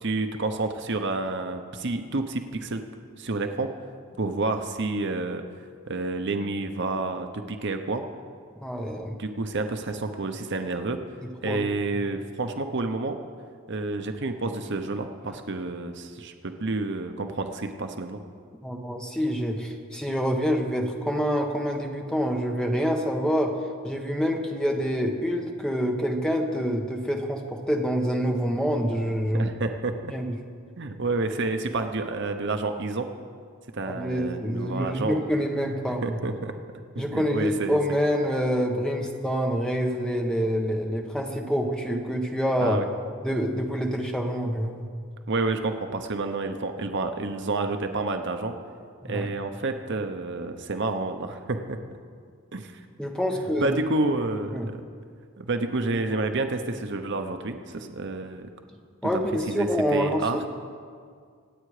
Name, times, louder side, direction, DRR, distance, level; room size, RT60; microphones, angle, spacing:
voice 1, 0.0-2.8 3.2-3.7 4.2-5.4 5.9-8.0 9.2-11.0 11.4-13.2 13.7-18.2 29.3-30.1 30.8-33.1 33.7-35.2 36.0-36.5 36.9-37.8 42.6-42.9 45.3-48.5 49.1-51.8 52.5-52.7 53.4-54.8 55.4-58.5 59.5-60.4, right 3 dB, 55° right, 6 dB, 0.9 m, -29 dB
voice 2, 8.6-9.2 11.5-11.6 18.6-23.5 23.8-29.5 30.1-30.4 33.9-36.2 37.0-42.8 43.2-44.9 49.0-49.3 53.0-53.8 54.5-54.7 59.0-60.2, equal, 5° left, 2 dB, 1.3 m, -26 dB
26.0 x 8.9 x 5.0 m, 2.1 s
head